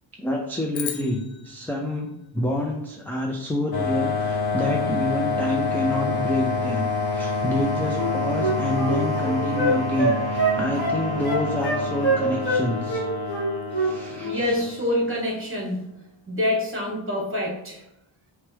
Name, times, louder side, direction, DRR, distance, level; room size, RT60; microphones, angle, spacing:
voice 1, 0.2-13.0 13.7-14.6, left 1 dB, 5° left, -1 dB, 0.4 m, -28 dB
sound 1, 0.7-3.2, left 8 dB, 80° left, 0.7 m, -38 dB
sound 2, 3.7-15.1, left 3 dB, 50° left, 0.9 m, -27 dB
Wind instrument woodwind instrument, 7.9-12.6 12.9-13.9 14.2-14.4, right 2 dB, 20° left, 1.2 m, -25 dB
voice 2, 14.2-15.9 16.3-17.8, left 1 dB, 25° right, -2 dB, 1.3 m, -26 dB
5.9 x 2.3 x 3.4 m, 0.83 s
wide cardioid pair, 110°, 47 cm